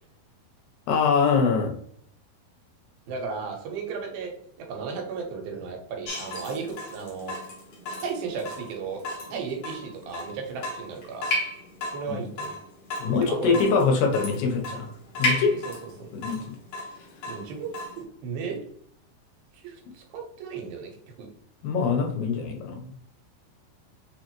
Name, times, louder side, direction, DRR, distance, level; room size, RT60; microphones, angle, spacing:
voice 1, 0.9-1.8 12.1-12.2 13.0-14.9 15.2-15.6 16.1-16.6 21.6-23.1, left 5 dB, 85° left, 2 dB, 2.8 m, -24 dB
voice 2, 3.1-4.3 4.6-7.4 8.0-9.0 9.3-11.3 11.9-12.6 13.1-13.6 15.7-15.8 16.0-16.1 17.2-18.6 19.5-20.9 21.2-21.3, right 5 dB, 85° right, 1 dB, 2.8 m, -34 dB
Water tap faucet / Drip, 6.1-18.0, left 2 dB, 55° left, 1.9 m, -34 dB
6.5 x 2.6 x 3.0 m, 0.65 s
omnidirectional pair, 4.3 m